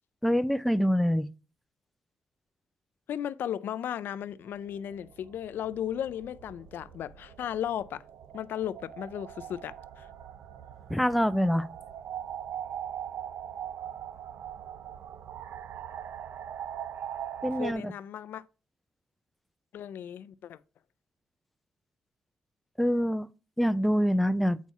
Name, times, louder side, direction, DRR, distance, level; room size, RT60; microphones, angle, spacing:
voice 1, 0.2-1.3 10.9-11.7 17.4-17.9 22.8-23.3 23.6-24.6, equal, ahead, 0.3 m, -25 dB
voice 2, 3.1-8.0 8.3-10.1 17.6-18.4 19.7-20.6, left 10 dB, 70° left, 0.4 m, -35 dB
sound 1, 4.5-17.7, right 9 dB, 65° right, 0.5 m, -41 dB
8.3 x 4.1 x 4.7 m
wide cardioid pair, 170°, 4 cm